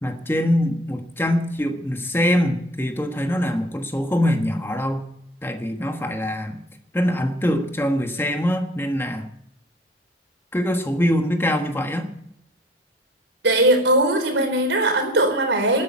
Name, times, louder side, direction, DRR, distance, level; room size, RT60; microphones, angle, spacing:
voice 1, 0.0-5.1 5.4-6.6 6.9-9.3 10.5-12.1, equal, 15° left, 6 dB, 1.3 m, -23 dB
voice 2, 13.4-15.8, right 1 dB, 85° right, 6 dB, 4.0 m, -19 dB
13.5 x 8.7 x 9.5 m, 0.77 s
head